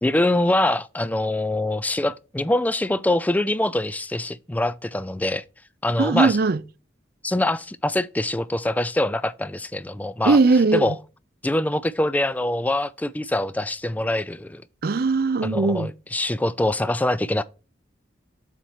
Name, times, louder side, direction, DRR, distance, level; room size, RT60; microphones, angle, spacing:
voice 1, 0.0-5.4 5.8-6.4 7.2-10.4 10.7-10.9 11.4-14.6 15.4-17.4, left 1 dB, 10° left, 0.3 m, -24 dB
voice 2, 6.0-6.6 10.3-10.9 14.8-15.9, right 3 dB, 50° right, 0.5 m, -19 dB
7.5 x 4.2 x 5.0 m
head